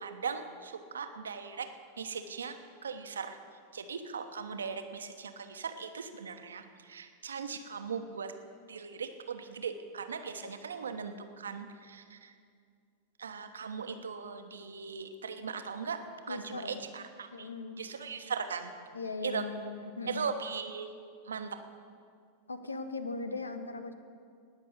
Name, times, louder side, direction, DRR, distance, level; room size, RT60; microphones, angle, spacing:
voice 1, 0.0-1.7 2.0-3.4 3.7-8.3 8.7-12.3 13.2-16.0 16.3-17.5 17.8-18.7 19.2-19.5 20.1-20.9 21.2-21.6, right 5 dB, 70° right, 8 dB, 1.0 m, -39 dB
voice 2, 16.3-16.8 17.3-17.8 18.9-20.3 22.5-23.9, left 3 dB, 80° left, 10 dB, 1.0 m, -39 dB
19.0 x 6.7 x 8.2 m, 2.2 s
figure-of-eight pair, 90°, 0 cm